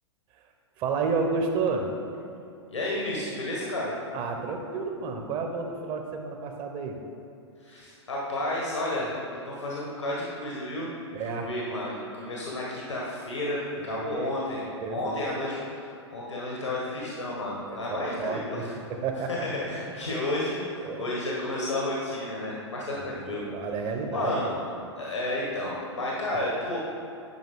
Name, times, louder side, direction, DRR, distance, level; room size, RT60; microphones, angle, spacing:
voice 1, 0.8-1.9 4.1-7.0 11.1-11.5 13.8-14.4 14.8-15.5 17.9-19.4 20.8-21.0 23.0-24.6, right 4 dB, 35° right, 4 dB, 0.9 m, -31 dB
voice 2, 2.7-3.9 7.6-9.1 9.4-10.9 11.2-14.6 14.9-18.7 19.3-23.5 24.1-24.5 25.0-26.8, left 1 dB, 80° left, -4 dB, 1.4 m, -31 dB
10.5 x 5.3 x 3.7 m, 2.6 s
figure-of-eight pair, 105°, 15 cm